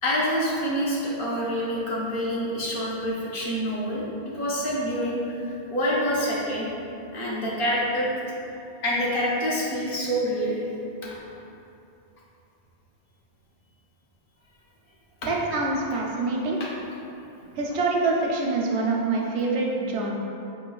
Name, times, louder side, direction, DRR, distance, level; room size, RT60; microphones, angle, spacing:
voice 1, 0.0-4.0 4.3-6.7 7.1-8.1 8.8-10.6 11.1-11.2 16.6-16.7, equal, 60° left, -6 dB, 0.9 m, -26 dB
voice 2, 15.3-16.6 17.6-20.1, right 3 dB, 85° right, -1 dB, 0.9 m, -25 dB
4.7 x 3.0 x 2.3 m, 2.7 s
omnidirectional pair, 1.1 m